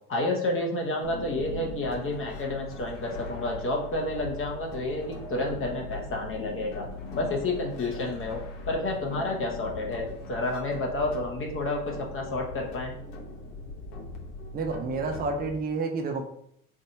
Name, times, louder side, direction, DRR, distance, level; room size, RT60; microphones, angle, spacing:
voice 1, 0.1-6.9 7.1-12.9, left 2 dB, 30° left, 0 dB, 1.1 m, -30 dB
sound 1, 1.0-15.5, left 2 dB, 70° left, 1.1 m, -40 dB
voice 2, 14.5-16.2, right 3 dB, 20° right, 3 dB, 0.6 m, -29 dB
3.9 x 3.6 x 2.7 m, 0.72 s
hypercardioid pair, 90°, 43 cm